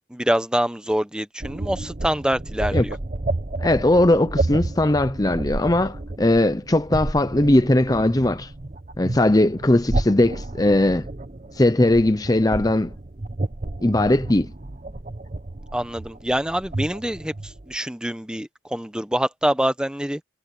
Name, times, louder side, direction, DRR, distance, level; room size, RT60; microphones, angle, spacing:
voice 1, 0.1-3.0 15.7-20.2, equal, 5° right, 0.9 m, -25 dB
sound 1, 1.4-17.8, right 2 dB, 40° right, 0.9 m, -31 dB
voice 2, 3.6-8.5 9.0-11.1 11.6-12.9 13.8-14.5, left 1 dB, 20° left, 0.7 m, -19 dB
head